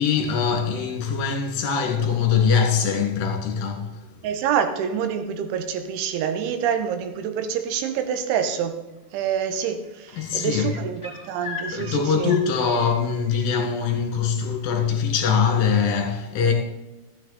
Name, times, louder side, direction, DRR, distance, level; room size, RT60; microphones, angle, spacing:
voice 1, 0.0-4.0 10.2-10.8 11.7-16.5, left 6 dB, 60° left, 3.1 m, -22 dB
voice 2, 4.2-8.8 9.1-12.4, right 8 dB, 90° right, 3.5 m, -26 dB
sound 1, 8.9-9.3 9.6-13.6 15.3-15.4, left 5 dB, 10° right, 2.8 m, -40 dB
15.0 x 9.6 x 4.1 m
omnidirectional pair, 5.4 m